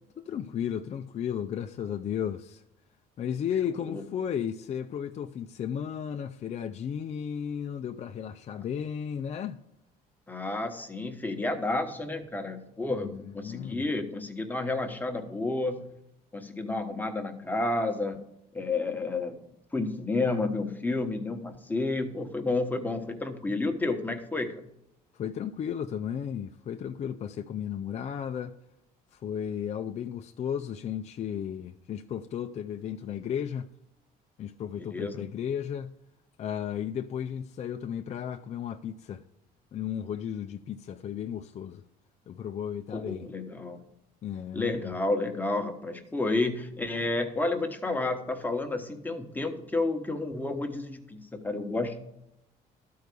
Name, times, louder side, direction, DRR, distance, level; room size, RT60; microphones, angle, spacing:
voice 1, 0.2-2.6 3.2-9.6 13.0-13.8 25.1-28.6 29.1-33.7 34.4-36.0 36.4-39.2 39.7-41.8 42.3-43.3 44.2-44.9, left 8 dB, 40° left, 0.5 m, -34 dB
voice 2, 10.3-16.0 16.3-18.2 18.5-19.4 19.7-24.7 34.8-35.2 42.9-43.8 44.5-52.0, left 2 dB, 10° left, 1.2 m, -31 dB
12.0 x 4.7 x 6.7 m
cardioid pair, 110°, 17 cm